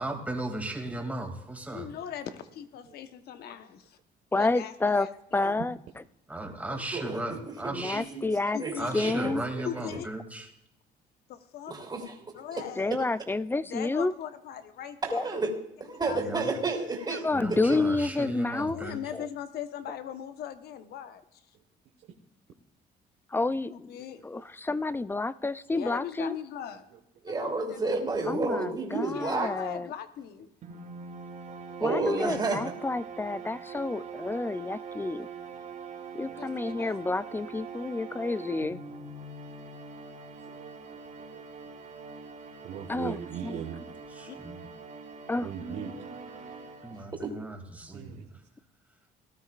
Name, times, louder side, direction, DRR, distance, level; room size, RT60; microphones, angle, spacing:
voice 1, 0.0-1.9 6.3-8.0 8.8-10.5 16.2-16.5 17.3-19.0 44.1-44.7 46.8-48.1, right 2 dB, 10° right, 2 dB, 2.5 m, -36 dB
voice 2, 1.7-4.0 4.4-5.5 6.7-6.8 8.5-8.9 9.6-10.1 11.3-11.7 12.3-12.9 13.7-15.2 16.0-16.5 18.7-21.4 23.7-24.2 25.7-26.9 27.3-28.1 29.1-30.5 36.4-37.0 44.3-44.4, left 9 dB, 70° left, 10 dB, 1.1 m, -40 dB
voice 3, 4.3-5.8 7.7-8.6 8.9-9.4 12.8-14.1 15.1-15.2 17.2-18.8 19.1-19.3 23.3-23.9 24.2-26.3 28.2-29.9 31.8-35.3 36.1-38.8 42.9-43.2 43.4-43.6 45.3-45.5, left 3 dB, 10° left, 16 dB, 0.4 m, -29 dB
voice 4, 6.9-8.3 8.6-9.6 11.7-12.1 12.5-12.6 15.0-15.5 15.8-17.8 27.2-29.5 31.8-32.6 47.2-47.3, right 3 dB, 25° right, 0 dB, 2.9 m, -31 dB
sound 1, 30.6-47.4, right 5 dB, 50° right, 2.3 m, -43 dB
voice 5, 33.9-34.5 35.5-35.6 36.2-36.4 36.8-36.9 40.5-41.4 41.9-42.0 42.6-43.9 45.4-46.1 47.9-48.3, right 8 dB, 75° right, 1 dB, 1.5 m, -41 dB
19.0 x 12.5 x 2.5 m, 0.85 s
cardioid pair, 110°, 17 cm